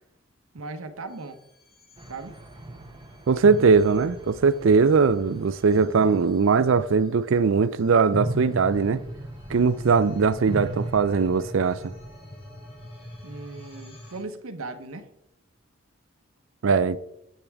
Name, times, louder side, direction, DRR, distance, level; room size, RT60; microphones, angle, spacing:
voice 1, 0.5-1.4 2.1-2.4 9.8-10.1 13.2-15.1, right 3 dB, 80° right, 0.8 m, -38 dB
sound 1, 1.1-14.2, left 1 dB, 25° left, 2.8 m, -44 dB
sound 2, 2.0-7.6 8.0-10.9, right 1 dB, 20° right, 0.8 m, -37 dB
voice 2, 3.3-9.0 9.5-11.9 16.6-17.0, right 5 dB, 65° right, 0.4 m, -20 dB
10.5 x 8.3 x 3.5 m
head